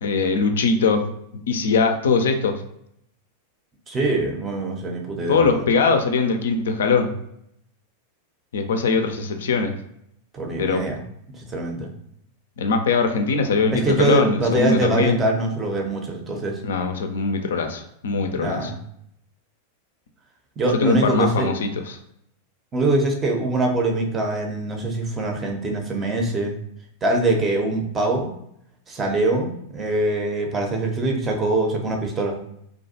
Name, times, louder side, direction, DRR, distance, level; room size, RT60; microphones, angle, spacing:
voice 1, 0.0-1.1 1.5-2.6 5.3-7.1 8.5-9.7 10.6-10.8 12.6-15.2 16.6-18.7 20.7-22.0, left 4 dB, 60° left, 6 dB, 0.3 m, -21 dB
voice 2, 3.9-5.6 10.3-11.0 11.3-11.9 13.7-16.6 18.3-18.8 20.6-21.5 22.7-26.6 27.0-28.3 28.9-32.4, right 2 dB, 20° right, 2 dB, 0.6 m, -23 dB
2.4 x 2.2 x 2.7 m, 0.74 s
figure-of-eight pair, 90°, 0 cm